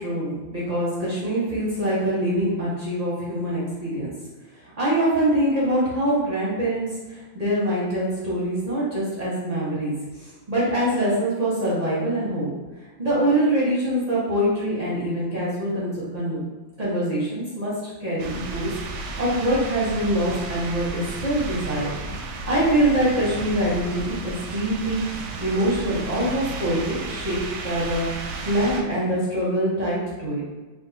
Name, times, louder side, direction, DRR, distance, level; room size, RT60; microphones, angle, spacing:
voice 1, 0.0-4.1 4.8-9.9 10.2-12.5 13.0-16.4 16.8-18.7 19.2-21.9 22.5-25.0 25.4-28.1 28.4-30.4, right 1 dB, 35° right, -8 dB, 0.6 m, -24 dB
sound 1, 18.2-28.8, right 3 dB, 75° right, 1.0 m, -33 dB
3.4 x 2.4 x 4.1 m, 1.2 s
omnidirectional pair, 2.1 m